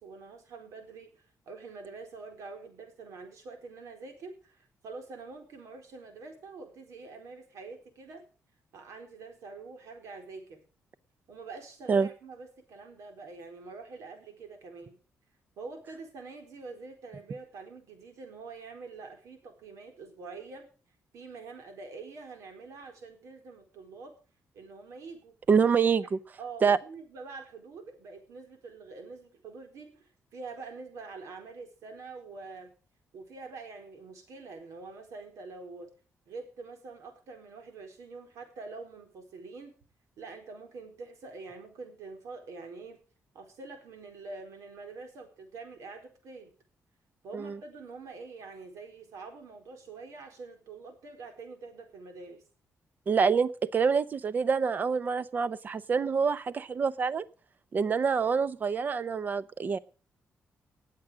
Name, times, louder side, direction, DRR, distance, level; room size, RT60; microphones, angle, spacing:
voice 1, 0.0-8.2 8.7-10.6 11.3-15.0 15.6-20.7 21.1-24.1 24.5-25.3 26.4-32.7 33.1-35.9 36.3-39.7 40.2-43.0 43.3-46.5 47.2-52.4, right 4 dB, 80° right, 5 dB, 4.3 m, -45 dB
voice 2, 25.5-26.2 26.6-26.8 47.3-47.6 53.1-57.2 57.7-59.8, right 5 dB, 35° right, 16 dB, 0.7 m, -26 dB
19.0 x 7.6 x 6.2 m, 0.38 s
wide cardioid pair, 165°, 5 cm